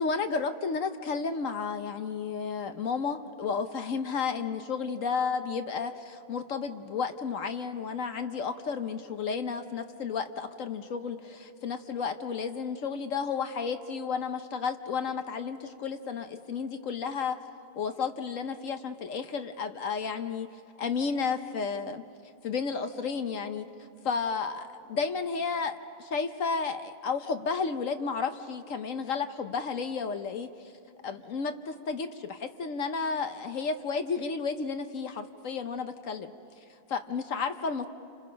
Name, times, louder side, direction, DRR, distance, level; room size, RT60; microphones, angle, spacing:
voice 1, 0.0-17.4 17.8-20.5 20.8-22.0 22.4-23.7 24.0-30.5 31.0-36.3 36.9-37.9, left 5 dB, 55° left, 8 dB, 1.0 m, -32 dB
29.5 x 26.5 x 5.2 m, 2.6 s
omnidirectional pair, 2.0 m